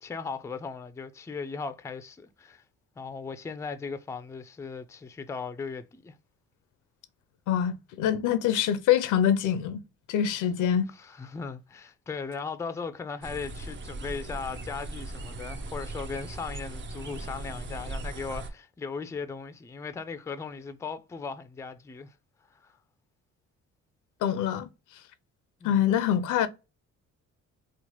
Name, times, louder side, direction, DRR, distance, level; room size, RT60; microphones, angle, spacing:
voice 1, 0.0-2.6 3.0-6.1 10.9-22.1 22.5-22.8 25.6-26.0, left 5 dB, 10° left, 0.3 m, -38 dB
voice 2, 7.5-9.8 10.1-10.9 24.2-24.7 25.6-26.5, left 9 dB, 80° left, 0.5 m, -25 dB
sound 1, 13.2-18.5, right 2 dB, 40° right, 0.5 m, -38 dB
3.0 x 2.1 x 2.9 m
cardioid pair, 90°, 30 cm